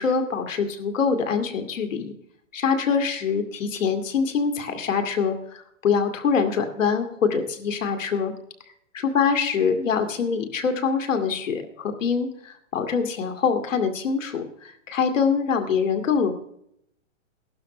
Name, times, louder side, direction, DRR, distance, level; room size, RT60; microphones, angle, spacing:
voice 1, 0.0-2.1 2.5-8.3 8.9-16.3, left 6 dB, 90° left, 6 dB, 2.3 m, -24 dB
16.0 x 12.0 x 3.2 m, 0.72 s
hypercardioid pair, 170°, 37 cm